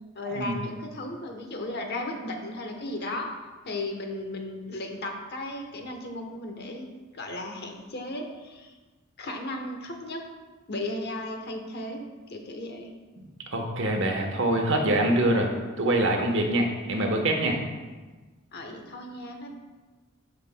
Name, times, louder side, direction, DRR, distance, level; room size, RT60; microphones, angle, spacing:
voice 1, 0.1-3.3 3.6-6.9 7.1-8.7 9.2-10.2 10.7-12.0 12.3-12.9 18.5-19.5, left 1 dB, 50° left, 3 dB, 1.0 m, -35 dB
voice 2, 13.5-15.5 15.8-17.6, right 1 dB, 65° right, 3 dB, 1.1 m, -24 dB
13.0 x 5.3 x 2.2 m, 1.3 s
head